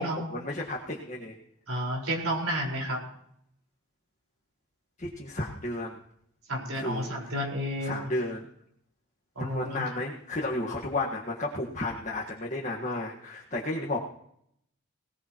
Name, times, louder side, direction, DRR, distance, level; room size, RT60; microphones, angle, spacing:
voice 1, 0.0-1.4 5.0-6.0 6.7-7.4 7.8-8.5 9.4-14.0, left 2 dB, 35° left, -2 dB, 1.6 m, -33 dB
voice 2, 1.7-3.0 6.5-8.0 9.3-9.8, equal, 85° right, -1 dB, 4.9 m, -31 dB
20.0 x 19.0 x 3.1 m, 0.70 s
head